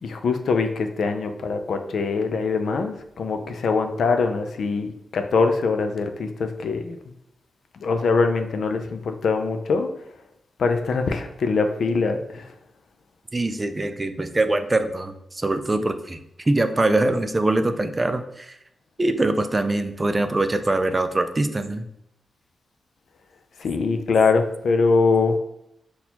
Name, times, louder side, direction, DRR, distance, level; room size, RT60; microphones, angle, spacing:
voice 1, 0.0-7.0 7.8-9.9 10.6-12.5 23.6-25.4, left 4 dB, 75° left, 6 dB, 0.4 m, -23 dB
voice 2, 13.3-16.2 16.5-18.6 19.0-21.9, right 2 dB, 25° right, 8 dB, 0.3 m, -23 dB
4.1 x 2.3 x 2.8 m, 0.78 s
cardioid pair, 80°, 0 cm